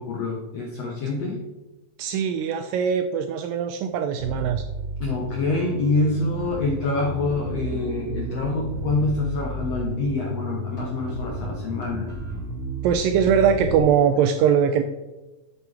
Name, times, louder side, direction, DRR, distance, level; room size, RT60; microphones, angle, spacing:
voice 1, 0.0-1.4 5.0-12.1, left 3 dB, 75° left, -1 dB, 1.5 m, -26 dB
voice 2, 2.0-4.7 12.8-14.8, right 7 dB, 85° right, 7 dB, 2.0 m, -21 dB
Bass guitar, 4.2-13.8, right 1 dB, 55° right, 0.8 m, -33 dB
8.3 x 6.9 x 3.3 m, 1.1 s
omnidirectional pair, 4.4 m